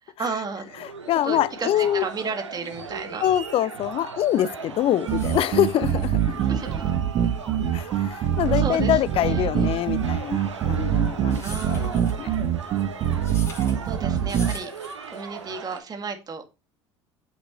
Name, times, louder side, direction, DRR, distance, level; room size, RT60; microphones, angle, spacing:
voice 1, 0.0-0.7 1.2-3.2 6.5-6.9 8.5-9.8 11.4-12.3 13.8-16.4, right 5 dB, 25° right, 2.0 m, -34 dB
sound 1, 0.5-15.8, right 5 dB, 85° right, 1.2 m, -38 dB
voice 2, 0.8-2.0 3.2-6.4 7.7-12.3, left 12 dB, 40° left, 0.5 m, -25 dB
sound 2, 4.7-15.5, left 2 dB, 15° left, 5.2 m, -45 dB
sound 3, 5.1-14.5, right 9 dB, 45° right, 1.2 m, -24 dB
8.4 x 6.1 x 3.0 m
figure-of-eight pair, 65°, 15 cm